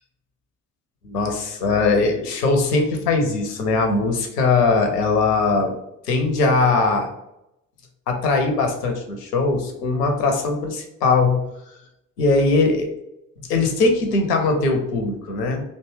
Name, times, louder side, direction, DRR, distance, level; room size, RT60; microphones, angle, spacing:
voice 1, 1.0-5.7 6.1-7.1 8.1-11.4 12.2-12.9 13.5-15.6, left 3 dB, 75° left, 3 dB, 0.6 m, -20 dB
2.6 x 2.2 x 3.2 m, 0.83 s
figure-of-eight pair, 50°, 48 cm